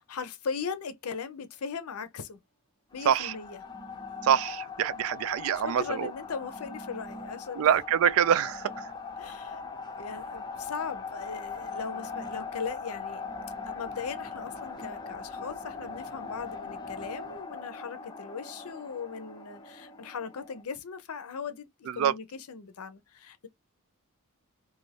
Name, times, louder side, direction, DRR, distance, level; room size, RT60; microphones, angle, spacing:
voice 1, 0.1-2.4 2.9-3.6 5.6-7.8 9.2-9.6 10.0-13.2 13.7-23.5, left 5 dB, 85° left, 0.6 m, -38 dB
sound 1, 2.9-20.6, left 4 dB, 20° left, 0.5 m, -40 dB
voice 2, 4.2-6.1 7.6-8.7 21.9-22.1, right 9 dB, 70° right, 0.3 m, -25 dB
2.6 x 2.5 x 3.2 m
head